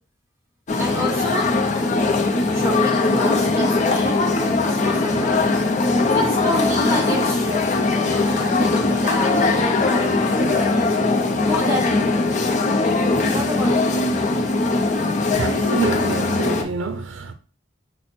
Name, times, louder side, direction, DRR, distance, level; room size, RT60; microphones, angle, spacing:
sound 1, 0.7-16.6, left 3 dB, 40° left, 0.6 m, -20 dB
voice 1, 0.8-1.5 2.5-5.7 6.0-10.9 11.4-12.2 13.3-14.0, left 1 dB, 15° right, 1.2 m, -29 dB
voice 2, 15.4-17.3, right 4 dB, 80° right, 0.5 m, -26 dB
5.9 x 2.1 x 4.2 m
head